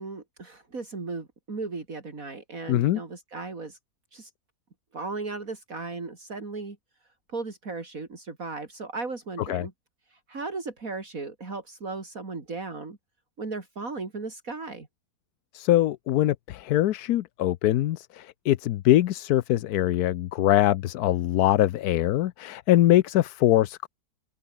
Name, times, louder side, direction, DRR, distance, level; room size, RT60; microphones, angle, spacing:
voice 1, 0.0-3.8 4.1-4.3 4.9-6.8 7.3-9.7 10.3-13.0 13.4-14.9, right 3 dB, 65° right, 3.6 m, -36 dB
voice 2, 2.7-3.0 9.5-9.7 15.5-23.9, left 14 dB, 85° left, 1.2 m, -23 dB
omnidirectional pair, 1.6 m